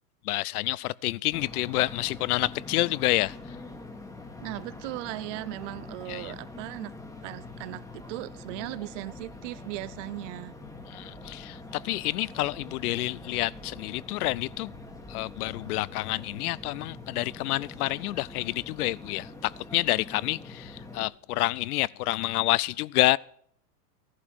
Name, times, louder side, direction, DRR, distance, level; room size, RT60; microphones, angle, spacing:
voice 1, 0.2-3.4 6.1-6.4 10.9-14.7 15.1-23.2, left 18 dB, 70° left, 0.6 m, -28 dB
sound 1, 1.3-21.1, left 2 dB, 5° left, 1.3 m, -44 dB
voice 2, 4.4-6.9 7.2-10.5, right 17 dB, 50° right, 0.8 m, -37 dB
14.5 x 11.5 x 4.6 m
hypercardioid pair, 120°, 47 cm